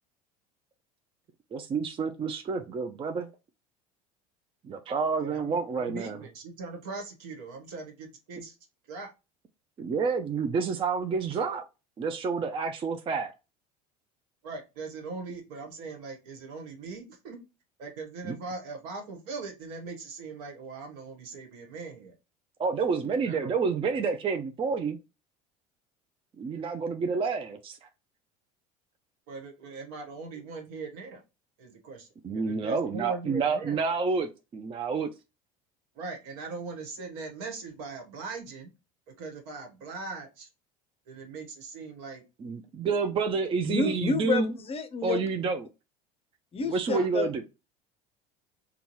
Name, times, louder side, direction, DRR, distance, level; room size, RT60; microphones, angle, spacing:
voice 1, 1.5-3.3 4.6-6.2 9.8-11.6 12.0-13.3 18.2-18.4 22.6-25.0 26.4-27.8 32.2-35.1 42.4-44.5 45.0-45.7 46.6-47.4, right 5 dB, 30° right, 0.4 m, -29 dB
voice 2, 5.2-8.6 8.9-9.1 14.4-17.4 17.8-22.1 23.2-23.5 29.3-31.2 31.6-32.1 32.3-33.8 35.9-38.7 39.2-40.5 41.1-42.2 46.9-47.1, right 4 dB, 75° right, 1.2 m, -40 dB
voice 3, 43.6-45.2 46.5-47.4, left 4 dB, 30° left, 0.6 m, -30 dB
3.7 x 2.3 x 2.9 m
hypercardioid pair, 85°, 19 cm